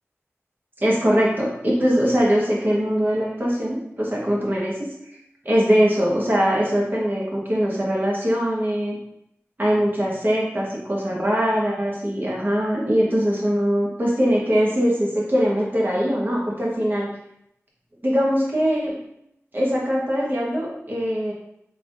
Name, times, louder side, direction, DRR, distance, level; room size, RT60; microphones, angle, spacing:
voice 1, 0.8-4.9 5.4-9.0 9.6-17.1 18.0-19.0 19.5-21.3, equal, 40° right, -4 dB, 1.2 m, -22 dB
3.5 x 3.5 x 2.5 m, 0.78 s
wide cardioid pair, 70°, 5 cm